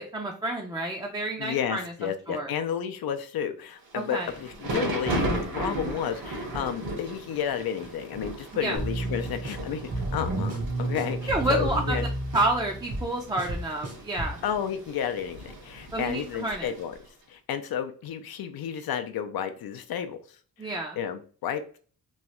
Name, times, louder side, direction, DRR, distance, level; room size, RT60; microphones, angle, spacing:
voice 1, 0.0-1.9 2.3-2.5 3.9-4.3 8.5-8.8 11.3-12.0 12.3-14.4 15.9-16.7 20.6-21.0, right 2 dB, 10° right, 0 dB, 0.4 m, -29 dB
voice 2, 1.4-12.0 14.4-17.0 17.3-20.2 20.6-21.8, left 8 dB, 85° left, 8 dB, 0.5 m, -32 dB
Thunder / Rain, 3.9-17.0, right 1 dB, 70° right, 1.2 m, -36 dB
sound 1, 8.8-14.4, right 2 dB, 45° right, 0.9 m, -32 dB
3.1 x 2.3 x 2.9 m, 0.42 s
wide cardioid pair, 115°, 35 cm